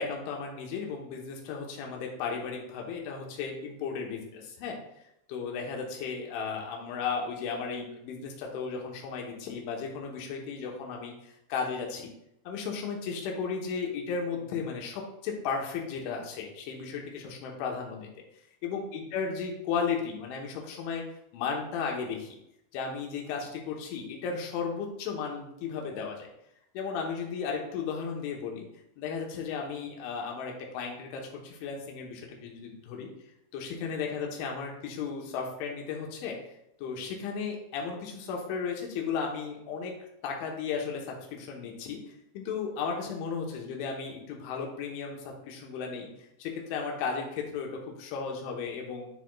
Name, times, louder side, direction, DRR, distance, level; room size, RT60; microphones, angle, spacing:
voice 1, 0.0-4.8 5.3-12.1 12.5-18.1 18.6-21.0 21.3-22.4 22.7-26.3 26.7-28.7 29.0-33.1 33.5-36.4 36.8-40.0 40.2-42.0 42.3-46.1 46.4-49.1, left 5 dB, 80° left, 0 dB, 3.3 m, -35 dB
10.5 x 4.2 x 2.3 m, 0.78 s
omnidirectional pair, 5.6 m